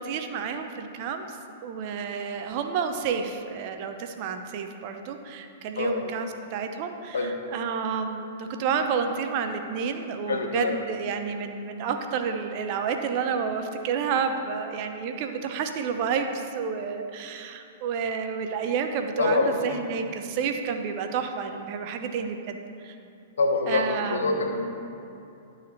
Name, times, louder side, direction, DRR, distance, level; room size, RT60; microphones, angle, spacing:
voice 1, 0.0-1.4 1.6-22.6 22.8-22.9 23.7-24.4, right 6 dB, 45° right, 6 dB, 0.8 m, -30 dB
voice 2, 10.3-10.7 19.2-19.8 23.4-24.6, left 3 dB, 70° left, 3 dB, 1.2 m, -25 dB
12.5 x 4.2 x 6.6 m, 2.7 s
figure-of-eight pair, 105°, 0 cm